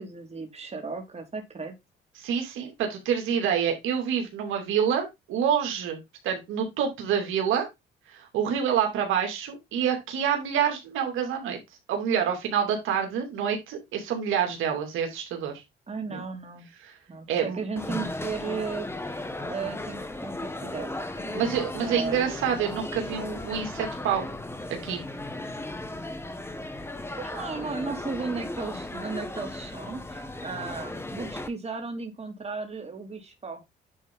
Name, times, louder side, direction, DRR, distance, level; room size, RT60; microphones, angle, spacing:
voice 1, 0.0-1.7 15.9-16.7 17.1-19.2 19.5-20.4 20.6-21.4 21.8-22.2 27.2-33.6, right 4 dB, 30° right, 4 dB, 3.2 m, -35 dB
voice 2, 2.2-7.7 8.1-11.6 11.9-15.5 16.1-16.2 16.8-16.9 17.3-17.6 21.3-24.2 24.8-25.0, right 8 dB, 85° right, 3 dB, 2.8 m, -27 dB
sound 1, 17.8-31.5, left 2 dB, 10° left, 1.7 m, -36 dB
10.0 x 4.4 x 3.8 m, 0.21 s
cardioid pair, 90°, 20 cm